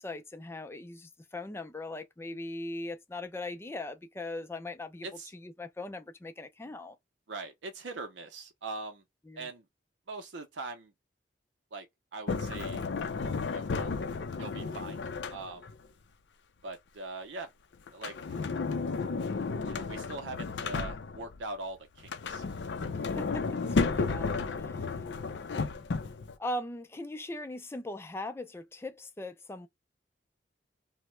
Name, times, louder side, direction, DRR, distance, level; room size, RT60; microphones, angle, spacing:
voice 1, 0.0-5.1 5.3-7.0 9.3-9.5 23.0-24.9 26.4-29.7, left 2 dB, 15° left, 0.4 m, -40 dB
voice 2, 7.3-9.0 9.4-9.6 10.1-10.9 11.7-11.9 12.1-12.9 13.5-13.9 14.4-15.0 15.3-15.7 16.6-17.5 17.9-18.4 19.6-22.7, right 3 dB, 80° right, 0.6 m, -42 dB
Sliding door, 12.3-15.8 17.9-21.4 22.0-26.3, left 4 dB, 75° left, 0.5 m, -33 dB
2.9 x 2.1 x 3.1 m
head